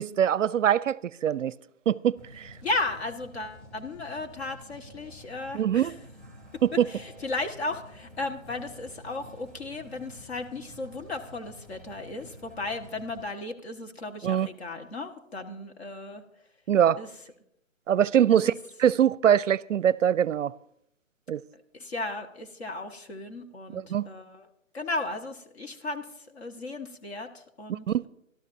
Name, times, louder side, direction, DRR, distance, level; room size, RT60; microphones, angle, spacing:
voice 1, 0.0-1.5 1.9-2.5 5.5-6.0 6.6-6.9 14.2-14.5 16.7-17.0 17.9-18.5 18.8-20.5 21.3-21.4 23.7-24.1 27.7-28.0, right 9 dB, 70° right, 0.5 m, -23 dB
sound 1, 2.2-13.2, equal, 15° left, 2.3 m, -49 dB
voice 2, 2.6-5.9 6.5-16.2 17.0-17.1 18.3-18.5 21.7-24.5 24.7-28.1, left 2 dB, 50° left, 1.6 m, -35 dB
26.0 x 12.5 x 2.7 m
hypercardioid pair, 165°, 40 cm